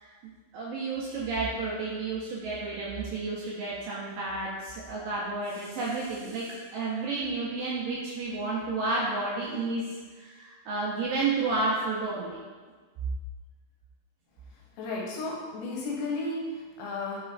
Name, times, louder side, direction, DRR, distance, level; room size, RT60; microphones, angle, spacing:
voice 1, 0.5-9.8 10.2-12.4, right 3 dB, 80° right, -6 dB, 2.0 m, -31 dB
voice 2, 14.8-17.2, left 2 dB, 90° left, -3 dB, 2.6 m, -33 dB
5.8 x 3.0 x 2.4 m, 1.4 s
omnidirectional pair, 4.5 m